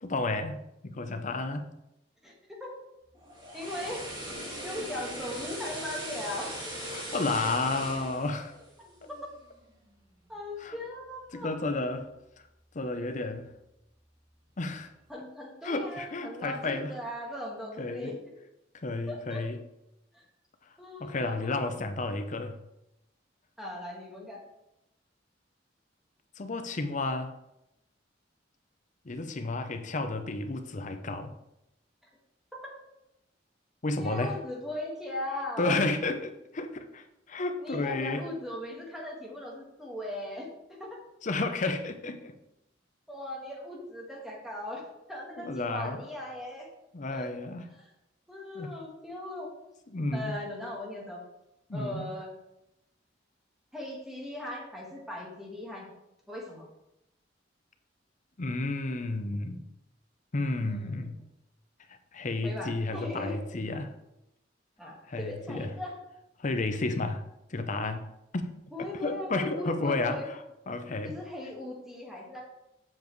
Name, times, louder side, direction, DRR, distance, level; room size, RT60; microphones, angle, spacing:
voice 1, 0.0-0.6 0.8-1.7 6.9-8.5 10.6-10.8 11.3-12.1 12.7-13.5 14.6-14.9 15.6-16.9 17.8-18.1 18.8-19.6 21.0-22.6 26.4-27.3 29.0-31.3 33.8-34.4 35.6-38.2 41.2-42.4 45.4-46.0 46.9-47.7 48.5-48.7 49.9-50.3 51.7-52.0 58.4-59.6 60.3-61.2 61.9-63.9 65.1-65.7 66.4-67.2 67.5-68.0 68.3-68.5 69.0-70.4 70.7-71.2, left 2 dB, 40° left, 7 dB, 0.6 m, -31 dB
voice 2, 2.2-2.8 3.5-4.1 4.6-6.5 9.1-9.2 10.3-11.5 15.1-18.2 19.1-19.4 20.1-20.2 20.8-21.5 23.6-24.4 34.0-35.8 37.6-40.5 40.8-41.0 43.1-44.8 45.1-46.7 47.1-47.3 47.7-47.9 48.3-49.5 50.1-51.2 51.7-52.3 53.7-55.9 56.3-56.6 60.6-61.1 62.4-63.4 64.8-66.0 68.7-70.3 71.0-72.4, left 1 dB, ahead, -3 dB, 1.6 m, -39 dB
sound 1, 3.2-9.4 9.7-9.9, right 1 dB, 25° right, 2.3 m, -40 dB
7.4 x 7.0 x 3.1 m, 0.88 s
head